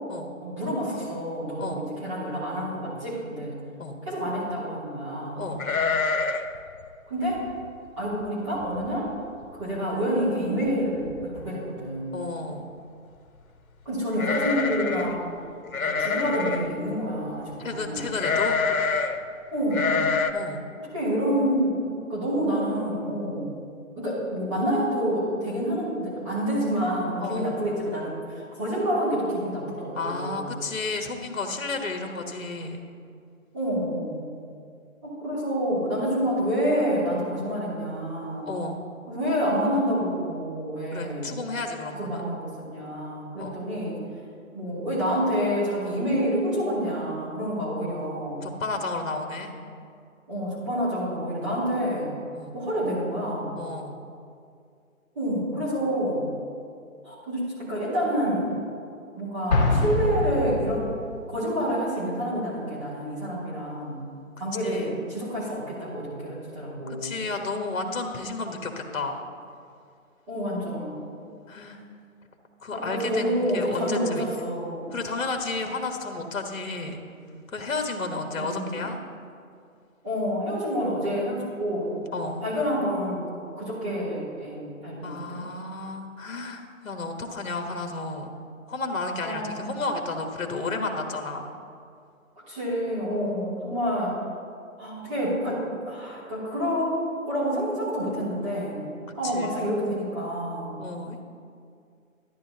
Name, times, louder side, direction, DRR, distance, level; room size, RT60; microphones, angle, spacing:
voice 1, 0.4-3.5 4.0-5.5 7.1-7.4 8.0-9.1 9.5-12.2 13.8-15.3 15.8-18.1 19.5-20.1 20.9-23.5 24.0-30.5 33.5-34.3 35.0-38.5 39.1-41.4 42.0-44.0 44.5-48.5 50.3-52.1 52.5-53.6 55.1-56.3 57.0-58.5 59.1-60.9 61.3-64.0 64.4-67.1 70.3-71.1 72.7-75.0 78.4-78.8 80.0-82.0 82.4-85.4 89.2-89.5 92.5-94.2 94.8-96.9 97.2-98.9 99.2-100.8, equal, 20° right, -10 dB, 2.8 m, -28 dB
sound 1, 5.6-6.6 6.8-6.9 7.4-7.7 8.2-8.3 8.6-9.1 9.4-9.5 10.7-10.8 11.1-11.5 14.1-15.2 15.7-16.7 18.2-19.2 19.7-20.3, left 5 dB, 85° left, 0.9 m, -26 dB
voice 2, 12.1-12.7 17.6-18.6 20.3-20.6 27.2-27.6 29.9-32.8 38.4-38.8 40.9-42.2 43.4-43.6 48.4-49.5 52.3-52.6 53.5-54.0 64.6-65.0 66.9-69.2 71.5-71.8 72.6-74.5 74.9-77.0 77.5-79.0 82.1-82.5 85.0-88.3 88.7-91.5 93.2-93.4 99.2-99.7 100.8-101.3, left 3 dB, 65° left, 4 dB, 1.4 m, -32 dB
Explosion, 59.5-61.2, left 2 dB, 30° left, 2.1 m, -24 dB
13.0 x 10.5 x 2.8 m, 2.3 s
hypercardioid pair, 170°, 42 cm